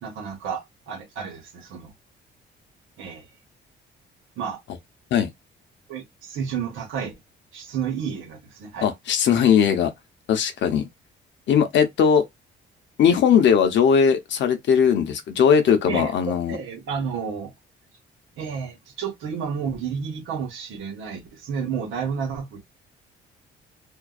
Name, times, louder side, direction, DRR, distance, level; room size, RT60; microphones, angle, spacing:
voice 1, 0.0-1.9 3.0-3.3 4.4-4.6 5.9-7.1 7.5-8.9 15.9-17.5 18.4-22.6, right 6 dB, 85° right, 1.0 m, -31 dB
voice 2, 8.8-9.9 10.3-10.9 11.5-12.2 13.0-16.6, left 7 dB, 70° left, 0.7 m, -19 dB
2.5 x 2.2 x 2.3 m
cardioid pair, 90°, 20 cm